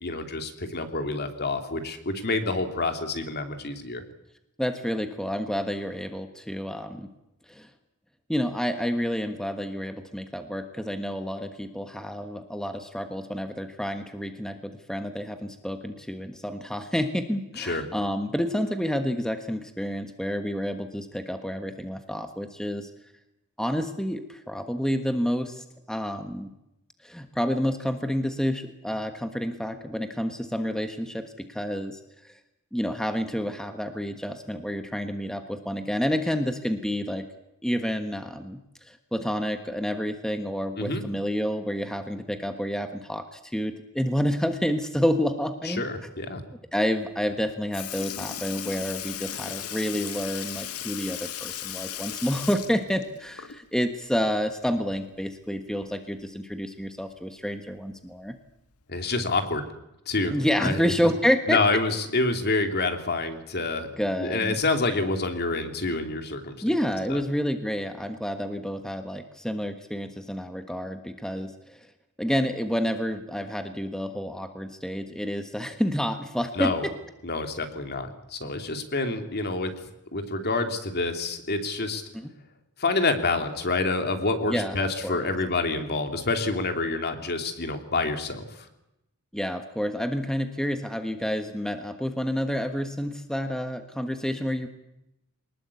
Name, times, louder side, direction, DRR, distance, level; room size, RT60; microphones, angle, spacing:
voice 1, 0.0-4.0 17.6-17.9 40.8-41.0 45.6-46.4 58.9-59.6 60.1-60.3 60.6-60.9 61.5-63.9 64.2-66.6 67.1-67.2 76.5-76.9 77.2-79.7 80.1-82.0 82.8-88.7, left 3 dB, 45° left, 6 dB, 2.9 m, -27 dB
voice 2, 4.6-7.1 7.5-7.7 8.3-22.9 23.6-26.5 27.0-32.0 32.2-32.3 32.7-37.2 37.6-38.6 38.9-45.8 46.7-58.4 60.3-61.6 64.0-64.6 66.6-71.8 72.2-76.9 82.1-82.3 84.5-84.7 85.0-85.3 89.3-94.7, equal, 5° left, 7 dB, 1.3 m, -29 dB
Sink (filling or washing) / Liquid, 47.3-47.4 47.7-53.8 54.2-54.3 55.8-55.9 56.9-57.0 57.8-58.0 58.8-58.9, left 10 dB, 85° left, 1.7 m, -36 dB
24.0 x 20.0 x 8.4 m, 0.88 s
head